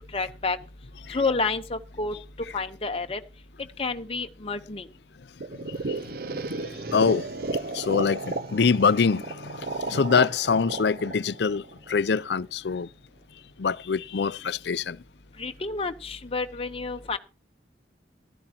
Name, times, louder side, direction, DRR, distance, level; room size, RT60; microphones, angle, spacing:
voice 1, 0.1-0.6 1.1-2.2 2.5-3.2 3.8-4.9 15.4-17.2, left 3 dB, 30° left, 0.9 m, -29 dB
sound 1, 5.4-12.3, right 3 dB, 55° right, 0.7 m, -33 dB
voice 2, 6.9-7.3 7.7-11.6 11.9-12.9 13.6-15.0, left 5 dB, 60° left, 0.5 m, -24 dB
14.5 x 12.5 x 2.9 m
head